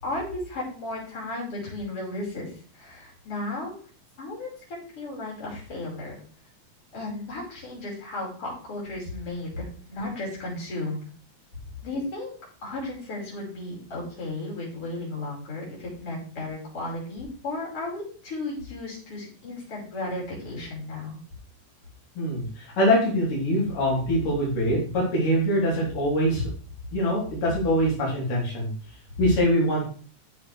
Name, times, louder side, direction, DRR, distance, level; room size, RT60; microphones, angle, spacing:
voice 1, 0.0-2.5 2.7-3.7 4.2-6.2 6.9-11.0 11.8-12.3 12.6-21.2, left 2 dB, 45° left, -4 dB, 6.0 m, -34 dB
voice 2, 22.2-26.4 26.9-28.7 29.2-29.9, equal, 90° left, -4 dB, 5.3 m, -23 dB
13.5 x 7.4 x 3.4 m, 0.42 s
omnidirectional pair, 3.6 m